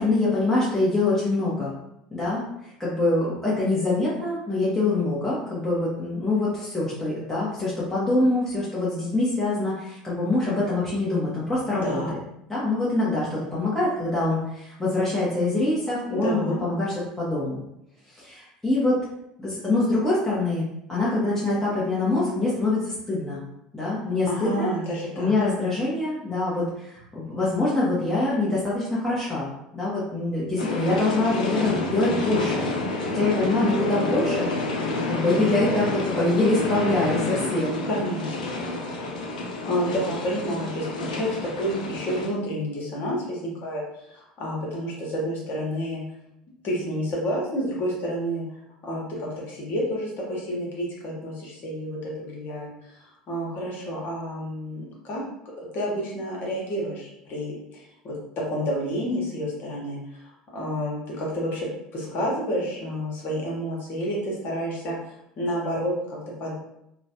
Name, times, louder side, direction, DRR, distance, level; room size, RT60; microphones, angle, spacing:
voice 1, 0.0-1.7 2.1-12.2 12.5-17.6 18.1-19.0 19.4-23.4 23.7-24.7 25.2-32.6 32.9-37.8, left 2 dB, 10° left, -9 dB, 1.0 m, -25 dB
voice 2, 16.1-16.6 24.3-25.3 37.8-38.3 39.6-41.3 41.6-43.8 44.1-46.0 46.6-48.4 48.8-52.7 53.3-55.2 55.7-58.1 58.5-60.0 60.5-61.7 61.9-65.0 65.4-66.5, equal, 50° left, -3 dB, 1.2 m, -29 dB
sound 1, 30.6-42.3, left 2 dB, 80° left, 0.4 m, -29 dB
3.0 x 2.3 x 2.8 m, 0.81 s
hypercardioid pair, 70°, 4 cm